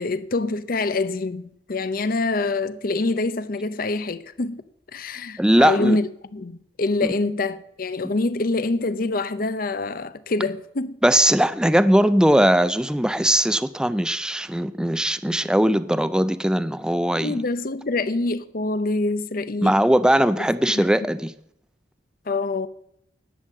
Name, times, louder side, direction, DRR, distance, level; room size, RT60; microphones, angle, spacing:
voice 1, 0.0-4.6 4.9-11.0 17.1-19.8 20.4-20.5 20.7-20.8 22.3-22.7, left 3 dB, 50° left, 0.7 m, -25 dB
voice 2, 5.4-6.0 11.0-17.4 19.6-21.3, right 1 dB, 5° right, 0.4 m, -19 dB
11.0 x 8.2 x 7.4 m
head